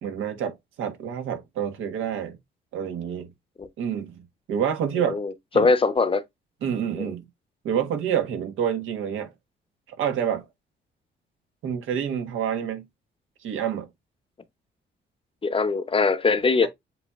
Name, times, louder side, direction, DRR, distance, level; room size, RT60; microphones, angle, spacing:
voice 1, 0.0-2.4 2.7-3.3 3.8-4.2 4.5-5.2 5.5-5.7 6.6-7.2 7.6-9.3 10.0-10.4 11.6-12.8 13.4-13.9 16.6-16.7, right 8 dB, 85° right, 1.5 m, -27 dB
voice 2, 5.0-6.2 7.0-7.1 15.4-16.7, left 4 dB, 25° left, 0.8 m, -22 dB
7.6 x 2.9 x 2.4 m
cardioid pair, 90°, 20 cm